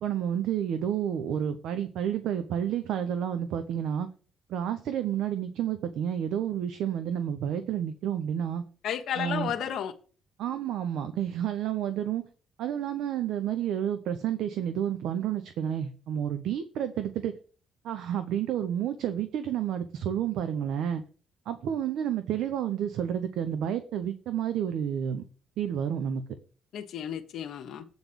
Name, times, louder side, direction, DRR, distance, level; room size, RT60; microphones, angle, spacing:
voice 1, 0.0-4.1 4.5-8.6 9.2-9.5 10.4-12.2 12.6-17.3 17.8-21.0 21.5-25.2 25.6-26.2, right 9 dB, 80° right, 0.8 m, -30 dB
voice 2, 8.8-9.9 26.7-27.9, left 9 dB, 75° left, 1.1 m, -32 dB
8.7 x 4.1 x 6.8 m
cardioid pair, 90°, 0 cm